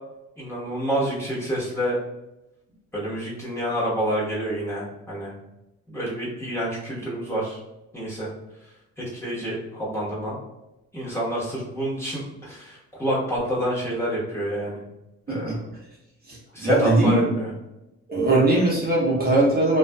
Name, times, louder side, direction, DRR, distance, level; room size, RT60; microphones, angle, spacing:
voice 1, 0.4-1.9 2.9-5.3 5.9-7.6 7.9-8.3 9.0-10.4 10.9-14.8 15.3-15.6 16.5-17.5, right 1 dB, 10° left, -8 dB, 1.0 m, -28 dB
voice 2, 16.6-17.2 18.1-19.8, right 2 dB, 30° right, -6 dB, 0.8 m, -20 dB
2.4 x 2.4 x 2.2 m, 0.93 s
cardioid pair, 90°, 30 cm